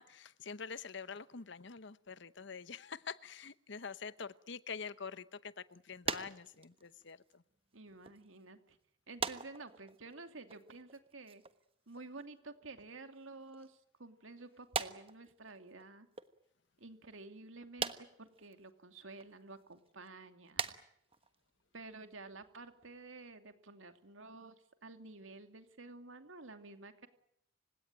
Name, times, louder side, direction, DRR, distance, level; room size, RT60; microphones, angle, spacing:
voice 1, 0.0-7.4, left 5 dB, 65° left, 16 dB, 0.9 m, -46 dB
sound 1, 6.0-7.7 8.0-8.4 9.2-10.1 10.4-11.6 11.9-12.3 13.2-13.8 14.6-15.8 16.1-16.3 17.8-18.5 19.2-19.3 19.7-20.1 20.5-20.8 21.1-21.3 21.6-21.8 22.5-22.6 23.0-23.1 23.2-23.3, right 5 dB, 30° right, 1.2 m, -41 dB
voice 2, 7.7-8.8 9.1-11.4 11.9-16.1 16.8-20.7 21.7-24.6 24.8-27.1, right 3 dB, 80° right, 8 dB, 2.7 m, -51 dB
30.0 x 17.5 x 9.1 m, 0.71 s
head